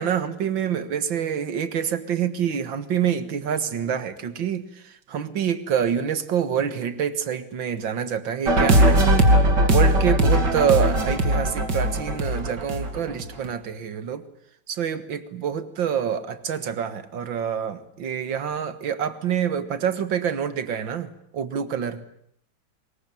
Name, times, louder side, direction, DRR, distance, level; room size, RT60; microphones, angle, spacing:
voice 1, 0.0-4.6 5.1-9.3 9.7-14.2 14.7-21.1 21.3-22.0, right 8 dB, 90° right, 12 dB, 2.3 m, -26 dB
sound 1, 8.5-13.5, right 1 dB, 65° right, 3.3 m, -19 dB
24.5 x 21.5 x 9.1 m, 0.71 s
omnidirectional pair, 2.0 m